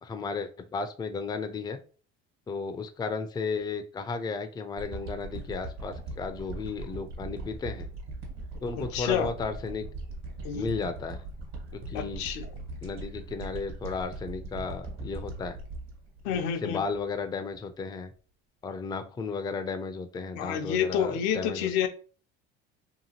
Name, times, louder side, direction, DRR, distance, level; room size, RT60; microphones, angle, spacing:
voice 1, 0.0-1.8 2.5-7.9 8.6-9.9 10.5-11.2 11.7-12.2 12.8-15.6 16.3-18.1 18.6-21.7, left 4 dB, 15° left, 0.3 m, -34 dB
sound 1, 4.8-17.1 17.6-17.7, right 2 dB, 60° right, 1.3 m, -40 dB
voice 2, 8.8-9.3 10.4-10.7 11.9-12.5 16.2-16.8 20.4-21.9, left 8 dB, 85° left, 0.5 m, -29 dB
2.8 x 2.4 x 2.8 m
supercardioid pair, 90°, 30 cm